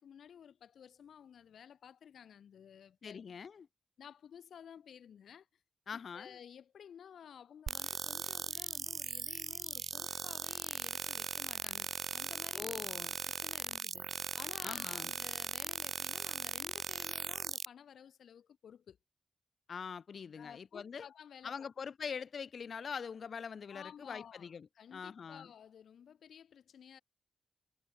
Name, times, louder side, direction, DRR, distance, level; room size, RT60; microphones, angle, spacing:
voice 1, 0.0-3.2 4.0-5.5 5.9-12.8 13.3-19.0 20.4-21.7 23.7-24.5 24.8-27.0, left 8 dB, 75° left, 2.0 m, -54 dB
voice 2, 3.0-3.7 5.9-6.4 12.5-13.2 14.6-15.1 19.7-21.1 21.4-25.5, left 6 dB, 50° left, 0.4 m, -43 dB
sound 1, 7.7-17.7, right 6 dB, 45° right, 0.3 m, -39 dB
wide cardioid pair, 175°, 0 cm